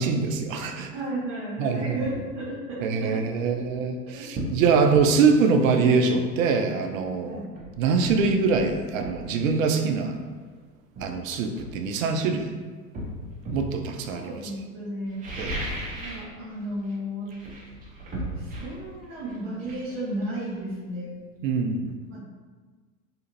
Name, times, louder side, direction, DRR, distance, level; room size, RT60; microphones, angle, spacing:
voice 1, 0.0-0.9 1.6-2.0 2.8-7.4 7.8-10.2 11.0-12.5 13.5-14.3 15.4-15.6 21.4-22.0, right 5 dB, 55° right, 5 dB, 0.5 m, -23 dB
voice 2, 0.9-3.6 4.1-4.3 7.3-7.4 14.1-15.2 15.9-17.3 18.3-21.2 22.1-22.2, right 1 dB, 40° right, -10 dB, 1.0 m, -33 dB
sound 1, 3.6-3.7 4.3-4.6 4.9-5.1 7.0-7.1 7.6-9.2 10.3-10.4 10.9-12.3 12.9-13.7 15.0-16.3 16.6-16.9 17.2-20.8 21.1-21.2, right 1 dB, 15° right, 0.6 m, -36 dB
2.8 x 2.4 x 3.0 m, 1.4 s
hypercardioid pair, 95°, 48 cm